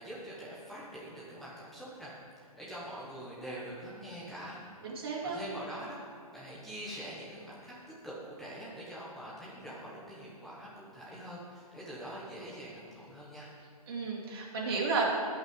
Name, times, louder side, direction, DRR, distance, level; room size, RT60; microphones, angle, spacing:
voice 1, 0.0-2.1 2.4-4.6 5.2-6.0 6.3-7.7 8.0-13.5, equal, ahead, -9 dB, 1.1 m, -44 dB
voice 2, 4.8-5.4 13.9-15.1, right 4 dB, 40° right, -4 dB, 2.6 m, -32 dB
11.5 x 5.7 x 9.0 m, 2.4 s
hypercardioid pair, 170°, 20 cm